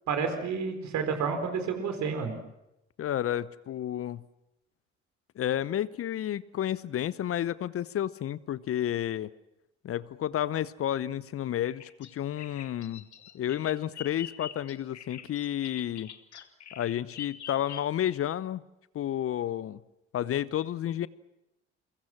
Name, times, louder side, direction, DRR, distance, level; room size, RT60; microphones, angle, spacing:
voice 1, 0.1-2.3, right 6 dB, 55° right, 7 dB, 4.4 m, -30 dB
voice 2, 3.0-4.2 5.4-9.3 9.8-13.0 13.3-16.1 16.7-18.6 18.9-19.8 20.1-21.1, left 11 dB, 45° left, 19 dB, 0.8 m, -31 dB
Bird vocalization bird call bird song, 11.6-18.2, left 9 dB, 85° left, 1.2 m, -45 dB
30.0 x 23.0 x 6.0 m, 0.89 s
figure-of-eight pair, 50°, 33 cm